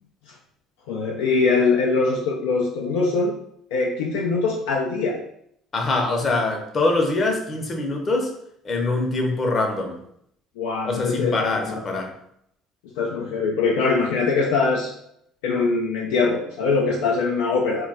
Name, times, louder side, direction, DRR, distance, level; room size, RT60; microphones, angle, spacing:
voice 1, 0.9-3.3 3.7-5.2 10.6-11.4 11.7-11.8 13.0-14.9 15.4-17.9, left 4 dB, 90° left, -2 dB, 0.4 m, -22 dB
voice 2, 5.7-8.3 8.6-10.0 10.8-12.1, left 2 dB, 40° left, 2 dB, 0.7 m, -23 dB
2.2 x 2.2 x 3.9 m, 0.72 s
supercardioid pair, 80°, 0 cm